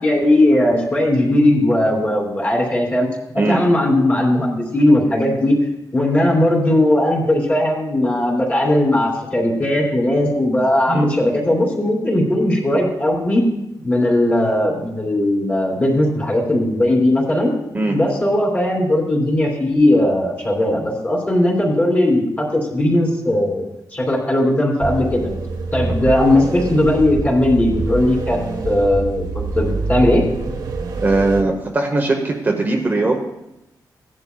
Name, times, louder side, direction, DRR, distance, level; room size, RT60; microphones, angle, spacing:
voice 1, 0.0-3.1 3.3-5.5 5.9-13.4 13.8-17.5 17.9-25.3 25.7-30.2, left 1 dB, 25° left, -2 dB, 3.0 m, -18 dB
sound 1, 24.8-31.4, right 3 dB, 75° right, 1.2 m, -26 dB
voice 2, 31.0-33.2, right 2 dB, 25° right, 1 dB, 0.9 m, -19 dB
17.0 x 11.0 x 2.3 m, 0.88 s
wide cardioid pair, 165°, 7 cm